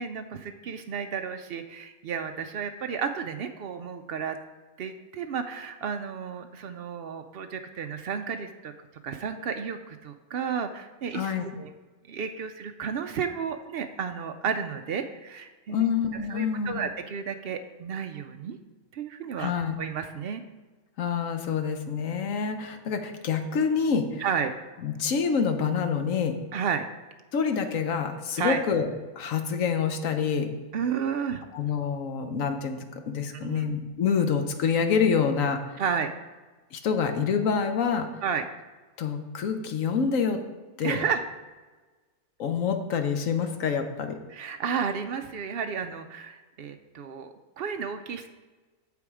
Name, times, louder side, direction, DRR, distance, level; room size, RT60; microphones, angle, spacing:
voice 1, 0.0-4.4 4.8-8.7 9.0-11.7 12.1-15.9 16.3-18.6 18.9-19.5 19.8-20.4 24.2-24.5 26.5-26.9 28.4-28.6 30.7-31.4 33.3-33.6 35.8-36.1 38.2-38.4 40.8-41.2 44.3-48.3, right 6 dB, 70° right, 7 dB, 0.5 m, -32 dB
voice 2, 11.1-11.4 15.7-16.9 19.4-19.8 21.0-24.2 24.8-26.4 27.3-28.9 29.2-30.5 31.5-35.6 36.7-38.2 39.0-40.4 40.8-41.0 42.4-44.2, left 6 dB, 65° left, 6 dB, 1.2 m, -27 dB
7.5 x 7.0 x 4.8 m, 1.3 s
omnidirectional pair, 1.6 m